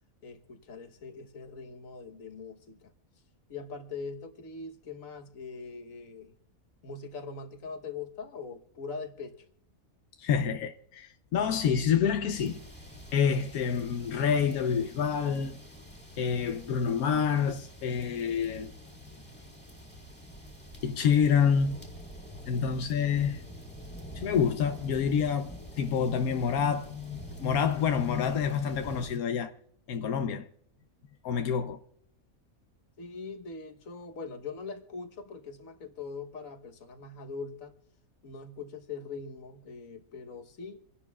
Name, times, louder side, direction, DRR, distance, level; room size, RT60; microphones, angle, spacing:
voice 1, 0.2-2.9 3.5-6.3 6.8-9.4 33.0-37.7 38.2-40.8, left 4 dB, 70° left, 1.5 m, -42 dB
voice 2, 10.2-12.6 13.1-15.6 16.2-18.7 20.8-21.8 22.5-23.4 24.1-29.5 29.9-30.5 31.2-31.8, left 7 dB, 90° left, 1.2 m, -27 dB
sound 1, 12.3-29.2, equal, 5° left, 1.9 m, -47 dB
27.5 x 11.0 x 2.3 m
omnidirectional pair, 1.5 m